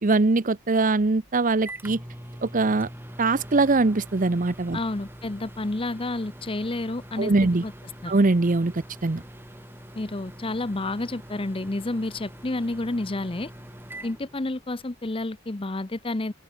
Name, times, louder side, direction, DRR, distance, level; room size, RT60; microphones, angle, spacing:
voice 1, 0.0-2.0 2.4-2.9 3.2-4.8 7.2-7.6 8.1-8.7 9.0-9.2, right 3 dB, 35° right, 0.7 m, -22 dB
Microwave oven, 1.2-15.0, right 1 dB, 10° right, 5.4 m, -44 dB
voice 2, 4.7-7.3 7.6-7.7 8.0-8.1 9.9-13.5 14.0-16.3, left 2 dB, 25° left, 0.7 m, -30 dB
open air
head